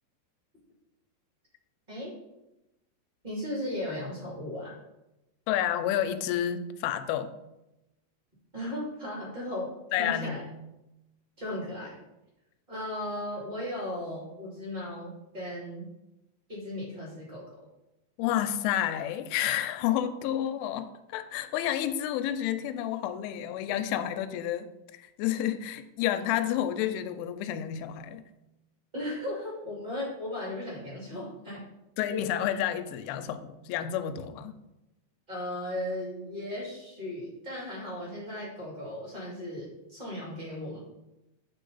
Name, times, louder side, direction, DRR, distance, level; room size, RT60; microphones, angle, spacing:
voice 1, 3.2-4.8 8.5-9.7 10.0-10.4 11.4-12.0 12.7-15.9 16.5-17.4 28.9-31.6 32.1-32.5 35.3-40.8, left 1 dB, 80° right, -5 dB, 0.4 m, -36 dB
voice 2, 5.5-7.3 9.9-10.5 18.2-28.2 32.0-34.6, left 11 dB, 85° left, 9 dB, 3.0 m, -30 dB
8.7 x 4.6 x 4.0 m, 0.94 s
omnidirectional pair, 5.5 m